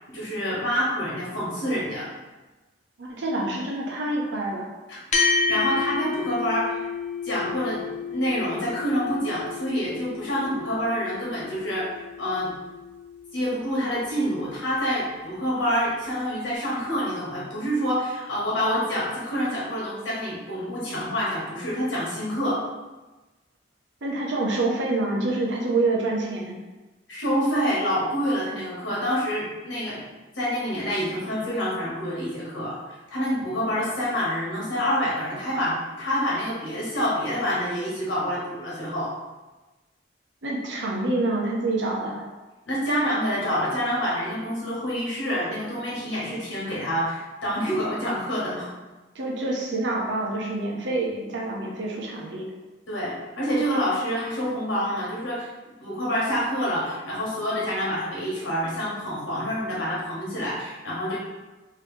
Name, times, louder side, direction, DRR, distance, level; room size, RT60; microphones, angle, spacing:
voice 1, 0.1-2.1 4.9-6.9 7.2-7.8 8.1-11.9 12.2-12.5 13.3-22.6 27.1-30.0 30.3-39.1 42.7-48.7 52.9-55.5 55.8-61.2, equal, 80° left, -7 dB, 1.4 m, -27 dB
voice 2, 3.0-4.6 24.0-26.6 40.4-42.2 49.1-52.4, right 2 dB, 70° right, -2 dB, 0.8 m, -27 dB
sound 1, 5.1-13.8, left 4 dB, 40° left, 0.5 m, -30 dB
3.3 x 2.8 x 3.2 m, 1.1 s
head